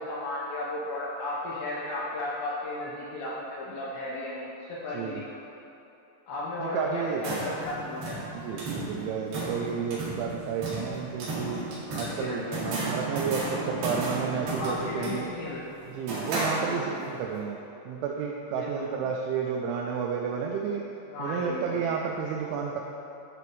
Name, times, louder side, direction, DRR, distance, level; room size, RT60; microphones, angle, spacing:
voice 1, 0.0-5.3 6.3-8.4 11.8-12.9 14.5-15.8 16.4-17.0 18.5-18.9 21.1-21.8, left 1 dB, 75° left, -6 dB, 2.6 m, -35 dB
voice 2, 6.6-7.3 8.4-11.7 11.9-15.3 15.9-17.6 17.9-20.9 21.2-22.8, right 6 dB, 85° right, 1 dB, 2.7 m, -31 dB
sound 1, 7.0-17.1, right 2 dB, 55° right, 3.5 m, -34 dB
13.5 x 6.0 x 3.1 m, 2.9 s
omnidirectional pair, 5.9 m